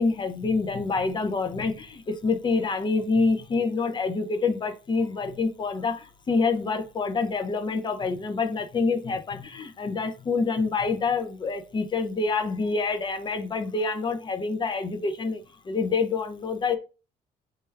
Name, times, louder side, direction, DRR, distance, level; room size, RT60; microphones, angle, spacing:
voice 1, 0.0-16.8, left 4 dB, 30° left, 0.5 m, -27 dB
3.3 x 2.2 x 3.3 m
cardioid pair, 110°, 17 cm